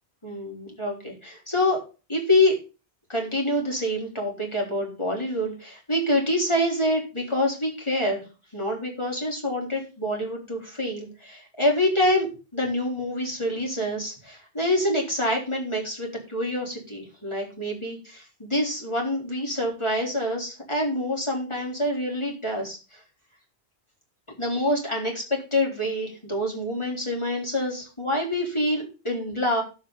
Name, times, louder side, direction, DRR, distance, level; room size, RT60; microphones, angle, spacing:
voice 1, 0.2-1.8 2.1-2.5 3.1-8.2 8.5-23.0 24.4-29.6, left 1 dB, 25° left, -1 dB, 4.0 m, -26 dB
17.0 x 6.1 x 4.0 m, 0.32 s
omnidirectional pair, 1.1 m